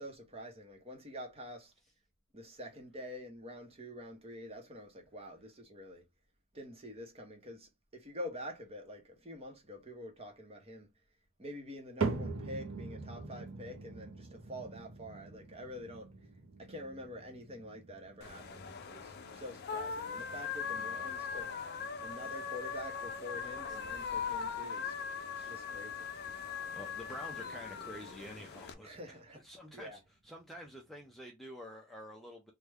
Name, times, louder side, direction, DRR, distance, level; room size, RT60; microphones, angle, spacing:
voice 1, 0.0-1.7 2.3-6.0 6.5-10.9 11.4-16.1 16.6-21.6 22.0-24.9 25.4-26.1 28.8-29.4 29.7-30.0, left 1 dB, 30° right, 0.9 m, -47 dB
sound 1, 12.0-28.3 28.6-29.2 29.8-29.9 30.7-30.8, right 4 dB, 85° right, 0.7 m, -44 dB
sound 2, 18.2-28.7, left 6 dB, 50° left, 0.5 m, -40 dB
voice 2, 26.7-29.0 29.3-32.5, equal, ahead, 0.5 m, -48 dB
3.2 x 2.2 x 3.4 m
head